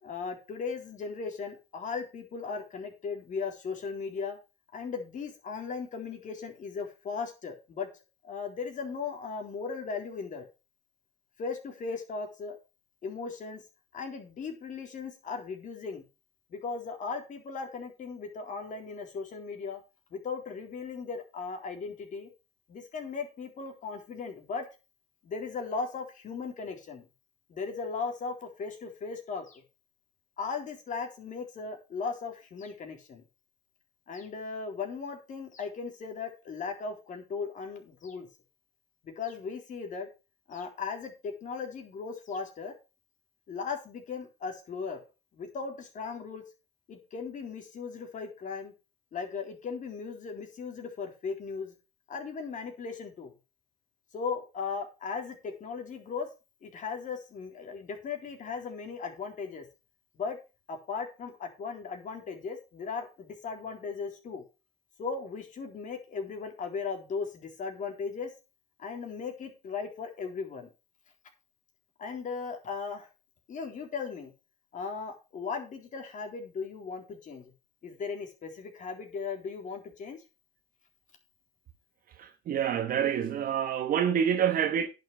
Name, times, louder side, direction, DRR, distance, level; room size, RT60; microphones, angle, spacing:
voice 1, 0.0-4.4 4.7-7.9 8.2-10.5 11.4-12.6 13.0-13.6 13.9-16.0 16.5-19.8 20.1-22.3 22.7-24.6 25.2-27.1 27.5-29.6 30.4-33.2 34.1-38.3 39.0-40.1 40.5-42.7 43.5-45.0 45.3-46.4 46.9-48.7 49.1-51.7 52.1-53.3 54.1-56.3 56.6-59.7 60.1-60.4 60.7-64.4 65.0-68.3 68.8-70.7 72.0-73.1 73.5-74.3 74.7-77.5 77.8-80.2, left 5 dB, 50° left, 3.7 m, -37 dB
voice 2, 82.2-84.9, right 8 dB, 60° right, 1.2 m, -27 dB
10.5 x 6.5 x 6.1 m
cardioid pair, 110°, 17 cm